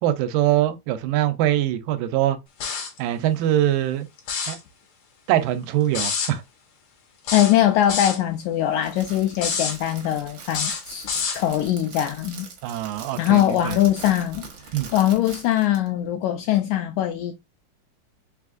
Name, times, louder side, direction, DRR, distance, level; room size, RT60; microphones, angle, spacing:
voice 1, 0.0-2.4 3.0-4.1 4.5-4.6 5.3-6.4 12.6-13.8 14.7-14.9, right 13 dB, 85° right, 2.3 m, -23 dB
sound 1, 2.6-3.0 4.2-4.6 5.9-6.3 7.3-8.2 9.3-9.8 10.5-11.4, left 5 dB, 65° left, 1.3 m, -27 dB
voice 2, 7.3-12.5 13.2-14.5 14.9-17.3, left 12 dB, 85° left, 1.7 m, -22 dB
Crackle, 8.7-15.9, right 5 dB, 65° right, 1.2 m, -42 dB
5.3 x 3.4 x 2.4 m
omnidirectional pair, 3.9 m